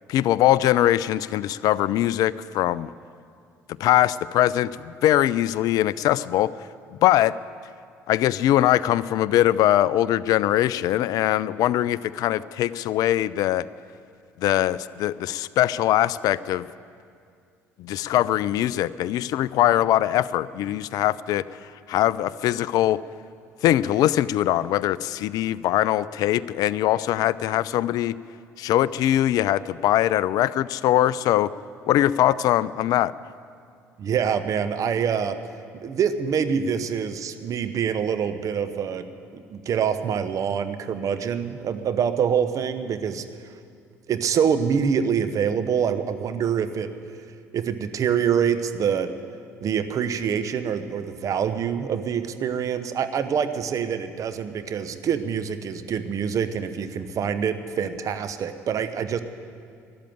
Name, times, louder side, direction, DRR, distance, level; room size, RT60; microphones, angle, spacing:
voice 1, 0.1-2.9 3.8-6.5 7.0-7.3 8.1-13.7 14.4-16.7 17.8-21.4 21.9-23.0 23.6-28.1 28.6-31.5 31.9-33.1, left 13 dB, 50° left, 19 dB, 0.4 m, -22 dB
voice 2, 34.0-35.4 35.7-39.1 39.3-43.2 44.1-46.9 47.5-49.1 49.6-59.2, right 7 dB, 40° right, 10 dB, 0.9 m, -25 dB
13.5 x 10.5 x 9.3 m, 2.3 s
figure-of-eight pair, 55°, 8 cm